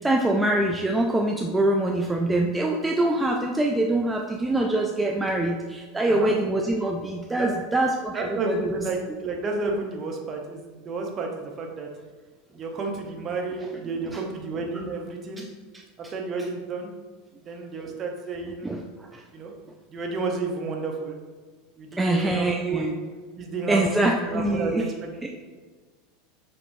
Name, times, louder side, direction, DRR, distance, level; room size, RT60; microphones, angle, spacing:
voice 1, 0.0-8.7 14.1-14.2 16.0-16.1 18.6-19.2 22.0-22.9 23.7-24.8 25.2-25.3, right 1 dB, 10° right, 1 dB, 0.3 m, -24 dB
voice 2, 8.1-11.9 12.5-15.4 16.0-16.9 17.4-18.7 19.3-19.5 19.9-21.2 21.8-22.9 23.4-25.3, right 3 dB, 35° right, 1 dB, 0.8 m, -31 dB
5.1 x 2.9 x 2.6 m, 1.4 s
hypercardioid pair, 85°, 0 cm